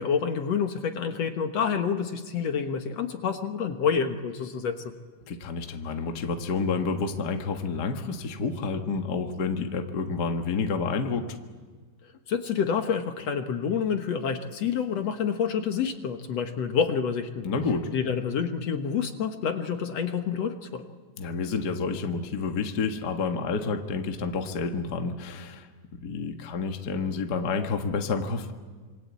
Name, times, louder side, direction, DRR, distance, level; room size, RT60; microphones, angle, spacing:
voice 1, 0.0-4.8 12.3-17.5 17.9-20.9, left 7 dB, 60° left, 6 dB, 2.4 m, -28 dB
voice 2, 5.3-11.3 17.4-17.9 21.2-28.5, left 4 dB, 40° left, 5 dB, 1.7 m, -29 dB
27.0 x 24.5 x 8.5 m, 1.5 s
omnidirectional pair, 3.5 m